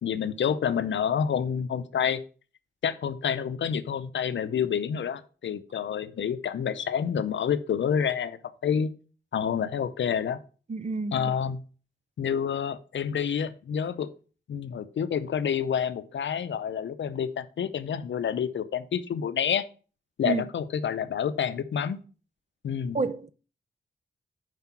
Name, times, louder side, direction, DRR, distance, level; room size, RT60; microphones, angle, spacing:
voice 1, 0.0-2.2 2.8-8.9 9.3-10.4 11.1-11.6 12.2-14.1 14.5-19.6 20.2-22.0 22.6-23.0, left 7 dB, 80° left, 0.6 m, -28 dB
voice 2, 10.7-11.3 20.2-20.4 22.9-23.3, right 4 dB, 35° right, 0.6 m, -29 dB
5.8 x 5.0 x 5.7 m
cardioid pair, 65°, 19 cm